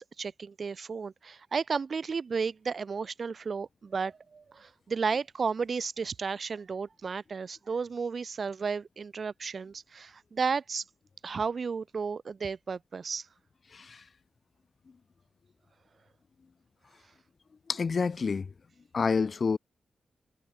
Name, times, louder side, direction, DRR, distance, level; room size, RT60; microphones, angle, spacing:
voice 1, 0.0-10.8 11.2-13.2, right 5 dB, 55° right, 1.8 m, -33 dB
voice 2, 13.7-14.0 17.7-18.5 18.9-19.6, left 5 dB, 50° left, 1.1 m, -28 dB
cardioid pair, 75°, 0 cm